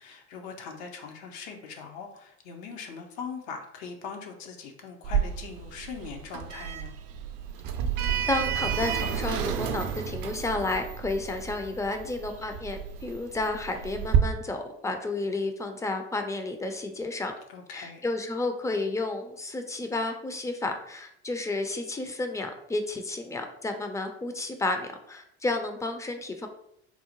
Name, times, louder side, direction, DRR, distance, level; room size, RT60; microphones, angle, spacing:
voice 1, 0.0-7.0 17.5-18.0, left 5 dB, 70° left, 3 dB, 0.7 m, -41 dB
Sliding door, 5.0-14.2, right 8 dB, 60° right, 0.5 m, -31 dB
voice 2, 8.3-17.3 17.7-26.5, left 2 dB, 10° left, 5 dB, 0.4 m, -31 dB
3.8 x 2.0 x 2.9 m, 0.73 s
hypercardioid pair, 70°, 33 cm